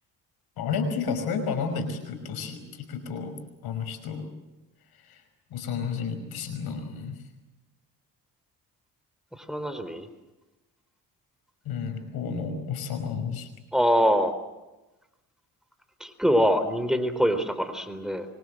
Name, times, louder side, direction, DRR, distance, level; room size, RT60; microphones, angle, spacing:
voice 1, 0.6-3.3 3.6-4.3 5.0-5.2 5.5-7.2 11.6-13.5, left 5 dB, 85° left, 8 dB, 5.6 m, -31 dB
voice 2, 9.4-10.1 13.7-14.3 16.0-18.3, equal, ahead, 10 dB, 4.0 m, -24 dB
25.0 x 24.5 x 7.9 m, 1.1 s
cardioid pair, 75°, 36 cm